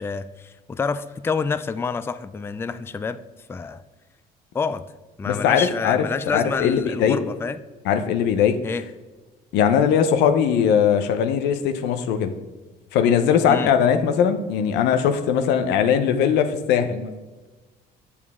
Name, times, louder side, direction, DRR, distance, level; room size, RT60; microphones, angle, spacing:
voice 1, 0.0-3.2 3.5-3.8 4.5-4.8 5.2-7.6 8.6-8.8 13.5-13.7, left 5 dB, 15° left, 13 dB, 0.3 m, -27 dB
voice 2, 5.2-7.2 7.8-8.6 9.5-12.3 12.9-17.1, left 8 dB, 90° left, 8 dB, 0.8 m, -20 dB
8.2 x 7.1 x 3.6 m, 1.2 s
cardioid pair, 110°, 17 cm